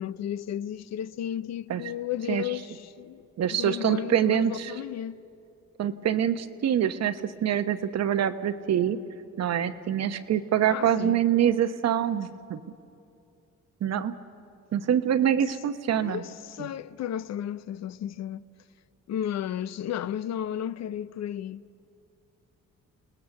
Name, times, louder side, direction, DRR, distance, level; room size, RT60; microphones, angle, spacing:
voice 1, 0.0-5.2 10.7-11.2 16.0-18.4 19.1-21.6, left 10 dB, 60° left, 0.6 m, -33 dB
voice 2, 3.4-4.7 5.8-9.0 9.4-12.6 13.8-14.1 14.7-16.2, right 9 dB, 60° right, 1.0 m, -25 dB
29.0 x 19.0 x 7.1 m
cardioid pair, 90°, 30 cm